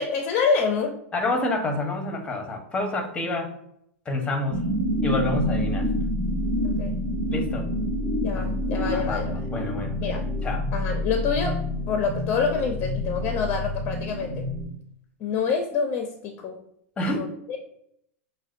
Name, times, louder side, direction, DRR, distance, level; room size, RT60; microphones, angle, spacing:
voice 1, 0.0-1.0 6.6-6.9 8.2-9.5 10.0-10.3 10.7-11.6 11.9-14.5 15.2-16.6 17.1-17.3, left 5 dB, 35° left, 3 dB, 0.5 m, -27 dB
voice 2, 1.1-3.5 4.1-4.6 5.0-5.9 7.3-7.7 8.3-8.5 8.8-9.2 9.5-10.1 10.4-10.7 17.0-17.3, left 2 dB, 15° left, 3 dB, 1.0 m, -28 dB
sound 1, 4.5-14.6, left 1 dB, 15° right, 1.2 m, -27 dB
6.1 x 2.2 x 2.5 m, 0.74 s
hypercardioid pair, 125°, 7 cm